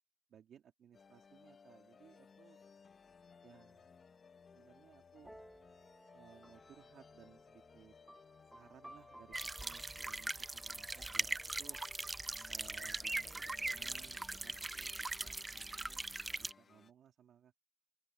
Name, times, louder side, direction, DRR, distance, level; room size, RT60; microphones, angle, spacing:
voice 1, 0.3-2.6 3.4-4.0 4.5-5.4 6.1-7.9 8.5-11.8 12.5-17.5, right 9 dB, 85° right, 2.5 m, -62 dB
sound 1, 0.9-16.9, left 5 dB, 65° left, 1.3 m, -61 dB
sound 2, 5.2-12.8, right 1 dB, 5° right, 1.2 m, -60 dB
sound 3, 9.3-16.5, right 2 dB, 30° right, 0.5 m, -41 dB
open air
cardioid pair, 50°, 0 cm